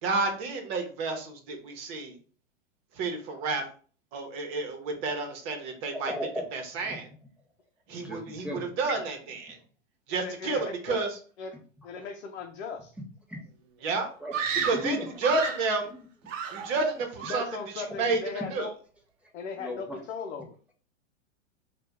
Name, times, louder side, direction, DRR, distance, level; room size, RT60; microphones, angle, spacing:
voice 1, 0.0-2.2 3.0-3.6 4.1-6.1 6.5-7.1 7.9-9.6 10.1-11.2 13.8-14.1 14.6-15.9 16.5-17.4 17.7-18.2 18.5-18.7, right 3 dB, 40° right, 4 dB, 1.0 m, -30 dB
voice 2, 5.9-6.5 6.9-7.0 8.0-8.7 13.3-13.4 14.2-15.1 19.6-19.8, left 1 dB, 5° right, -1 dB, 0.7 m, -35 dB
voice 3, 10.1-11.0 11.4-11.6 11.8-12.9 17.3-18.7 19.3-20.6, left 5 dB, 65° left, 2 dB, 0.7 m, -38 dB
Screaming, 14.3-15.7 16.3-16.9 17.2-17.6, right 6 dB, 80° right, 0.7 m, -32 dB
2.8 x 2.4 x 3.5 m, 0.41 s
hypercardioid pair, 125°, 37 cm